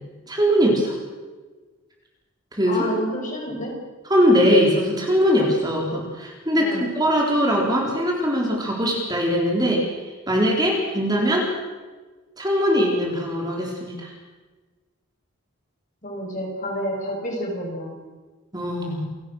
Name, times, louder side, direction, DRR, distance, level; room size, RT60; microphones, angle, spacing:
voice 1, 0.3-0.9 2.5-2.9 4.1-9.9 10.3-11.5 12.4-14.1 18.5-19.0, equal, 20° right, -1 dB, 4.0 m, -21 dB
voice 2, 2.6-3.8 6.5-6.9 16.0-18.0, equal, 40° left, 0 dB, 5.9 m, -29 dB
28.5 x 17.5 x 6.4 m, 1.3 s
head